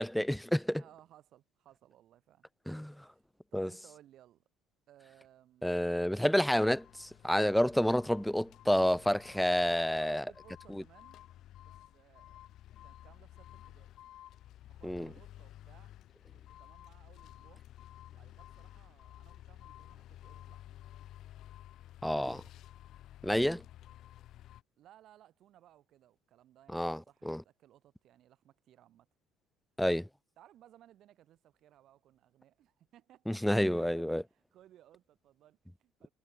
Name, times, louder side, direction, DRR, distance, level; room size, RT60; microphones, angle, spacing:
voice 1, 0.0-0.8 2.7-2.9 3.5-3.7 5.6-10.2 14.8-15.1 22.0-22.4 23.2-23.6 26.7-27.0 27.3-27.4 29.8-30.0 33.3-34.2, equal, 5° left, 0.3 m, -29 dB
voice 2, 0.8-2.5 2.8-3.2 3.5-4.4 4.9-5.8 9.8-12.5 12.8-13.9 14.7-15.9 16.3-17.6 18.1-20.8 24.8-29.1 30.4-36.1, right 12 dB, 60° right, 6.5 m, -61 dB
sound 1, 6.5-24.6, left 13 dB, 60° left, 5.0 m, -53 dB
supercardioid pair, 85°, 0 cm